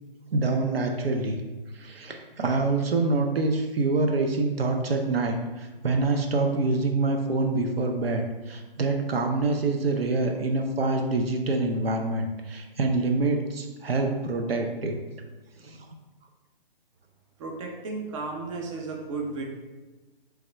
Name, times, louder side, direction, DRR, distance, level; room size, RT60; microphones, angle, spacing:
voice 1, 0.3-1.4 1.7-15.0 15.6-15.9, right 3 dB, 85° right, 3 dB, 0.6 m, -26 dB
voice 2, 17.4-19.4, right 3 dB, 35° right, 0 dB, 0.6 m, -34 dB
3.4 x 3.4 x 3.3 m, 1.2 s
figure-of-eight pair, 140°, 29 cm